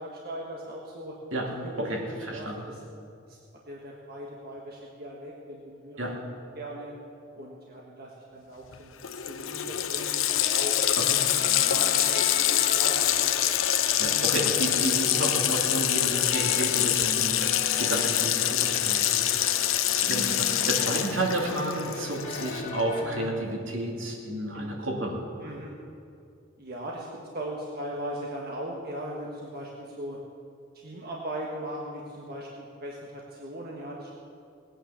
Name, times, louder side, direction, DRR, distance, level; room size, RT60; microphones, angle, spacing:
voice 1, 0.0-1.2 1.6-2.8 3.3-3.4 3.7-6.1 6.5-6.9 7.3-10.2 10.5-13.3 14.2-14.3 14.6-14.9 17.1-17.4 24.5-24.7 25.4-25.7 26.6-30.2 30.7-34.1, right 1 dB, 50° right, -2 dB, 1.5 m, -39 dB
voice 2, 1.8-2.6 6.0-6.2 11.0-11.2 14.0-25.2, right 1 dB, 75° right, 0 dB, 2.6 m, -31 dB
Water tap faucet, 8.7-8.8 9.0-22.8, left 11 dB, 80° left, 0.8 m, -25 dB
sound 1, 10.3-23.3, left 3 dB, 35° left, 1.8 m, -39 dB
18.5 x 9.2 x 7.0 m, 2.5 s
head